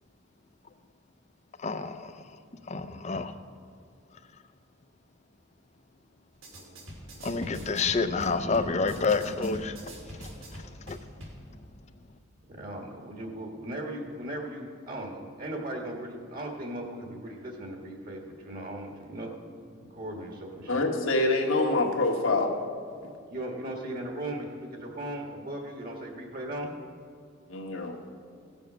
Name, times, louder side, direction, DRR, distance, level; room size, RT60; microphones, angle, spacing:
voice 1, 1.6-2.1 2.7-3.3 7.2-9.8 10.9-11.0, left 4 dB, 35° left, 0.6 m, -28 dB
sound 1, 6.3-11.4, equal, 85° right, 3.0 m, -44 dB
voice 2, 12.5-19.3 19.8-20.9 23.3-26.7, right 1 dB, 45° right, 1.6 m, -37 dB
voice 3, 20.7-22.5 27.5-27.9, left 2 dB, 80° left, 1.5 m, -25 dB
16.0 x 7.0 x 6.1 m
head